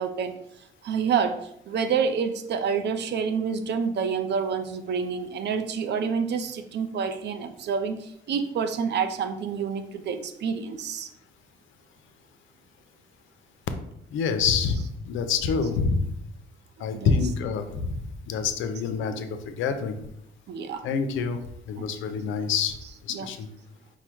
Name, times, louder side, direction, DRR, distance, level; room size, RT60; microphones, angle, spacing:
voice 1, 0.0-11.1 16.8-17.3 20.5-20.8 21.8-21.9 23.1-23.3, right 6 dB, 60° right, 9 dB, 0.5 m, -28 dB
voice 2, 14.1-16.1 16.8-20.0 20.8-21.4 21.7-22.8 23.0-23.5, left 5 dB, 80° left, 8 dB, 0.5 m, -27 dB
4.8 x 2.1 x 4.4 m, 0.76 s
cardioid pair, 90°, 20 cm